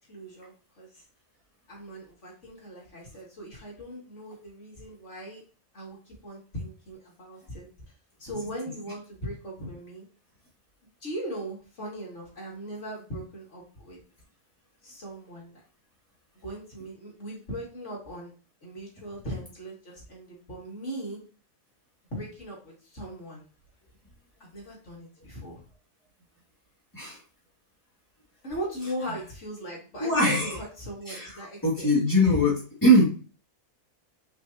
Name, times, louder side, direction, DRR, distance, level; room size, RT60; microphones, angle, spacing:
voice 1, 0.1-1.0 1.7-5.4 5.7-7.7 8.2-10.0 11.0-14.0 14.8-15.6 16.4-18.3 18.6-21.2 22.1-23.4 24.4-25.6 28.4-31.9 32.2-32.4, equal, 55° left, -3 dB, 3.0 m, -39 dB
voice 2, 30.0-30.6 31.1-31.3 31.6-32.5 32.8-33.1, equal, 15° left, -6 dB, 2.5 m, -21 dB
6.2 x 5.4 x 3.0 m, 0.38 s
omnidirectional pair, 1.5 m